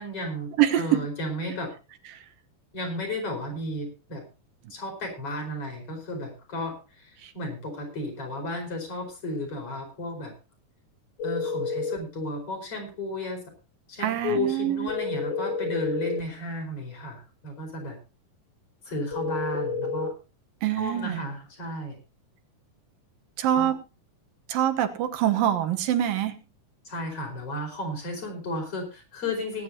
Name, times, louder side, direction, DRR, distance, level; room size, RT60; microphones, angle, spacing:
voice 1, 0.0-1.7 2.7-4.2 4.7-10.3 11.2-13.4 13.9-18.0 18.8-20.1 20.8-22.0 23.5-23.7 26.9-29.6, left 1 dB, 40° left, 4 dB, 5.6 m, -33 dB
voice 2, 0.6-1.0 2.1-2.2 7.2-7.3 14.0-14.9 20.6-21.2 23.4-23.8 24.5-26.4, right 11 dB, 85° right, 7 dB, 3.0 m, -25 dB
sound 1, 11.2-12.1 14.9-16.3 19.1-20.1, left 5 dB, 65° left, 1.1 m, -30 dB
20.0 x 10.5 x 2.9 m, 0.30 s
omnidirectional pair, 3.9 m